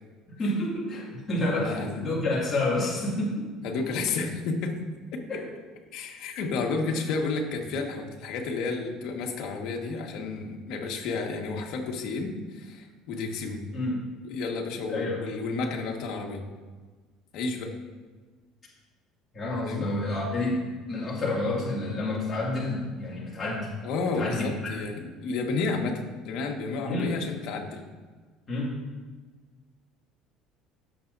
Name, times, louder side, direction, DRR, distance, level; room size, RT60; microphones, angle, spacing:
voice 1, 0.4-3.5 5.3-5.5 6.9-7.0 13.7-14.1 14.9-15.2 19.3-23.7 24.1-24.7 26.8-27.1 28.5-28.8, left 2 dB, 25° left, -6 dB, 2.5 m, -29 dB
voice 2, 1.4-2.1 3.6-4.8 5.1-5.2 5.9-13.6 14.2-16.4 17.3-17.7 19.7-19.9 23.8-27.8, left 4 dB, 65° left, 1 dB, 1.7 m, -31 dB
16.0 x 7.3 x 2.7 m, 1.4 s
cardioid pair, 120°, 0 cm